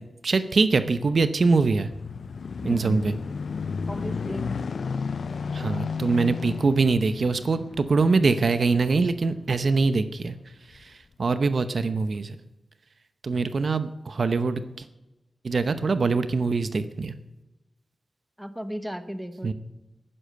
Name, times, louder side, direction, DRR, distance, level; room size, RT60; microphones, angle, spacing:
voice 1, 0.2-1.9 2.6-3.1 5.5-10.3 10.8-10.9 11.2-12.4 13.2-14.9 15.4-17.1 19.4-19.5, right 4 dB, 55° right, 11 dB, 0.8 m, -23 dB
sound 1, 1.3-10.1 10.7-10.8, left 5 dB, 75° left, 0.4 m, -33 dB
voice 2, 2.6-3.0 3.9-4.6 18.4-19.5, equal, 5° right, 10 dB, 0.8 m, -34 dB
12.0 x 10.0 x 7.7 m, 1.0 s
wide cardioid pair, 140°, 0 cm